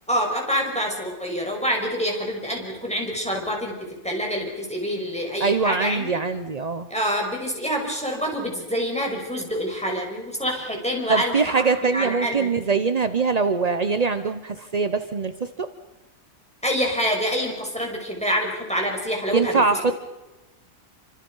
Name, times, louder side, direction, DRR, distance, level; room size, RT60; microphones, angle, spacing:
voice 1, 0.1-3.7 4.0-6.1 6.9-11.6 11.9-12.5 16.6-19.6, equal, 5° left, 0 dB, 5.9 m, -26 dB
voice 2, 5.4-6.9 11.1-15.7 19.3-20.0, right 4 dB, 40° right, 9 dB, 0.5 m, -23 dB
28.5 x 25.5 x 5.6 m, 1.1 s
omnidirectional pair, 2.0 m